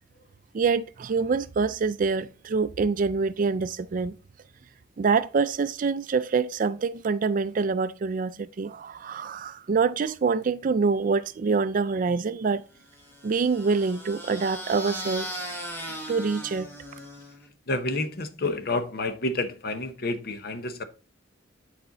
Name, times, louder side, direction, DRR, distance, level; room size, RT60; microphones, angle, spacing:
voice 1, 0.5-4.2 5.0-12.6 13.2-15.3 16.1-16.7, right 4 dB, 40° right, 0.4 m, -25 dB
sound 1, 12.9-17.5, equal, 10° left, 1.3 m, -38 dB
voice 2, 17.7-20.8, left 2 dB, 50° left, 0.8 m, -29 dB
8.3 x 4.3 x 3.8 m
head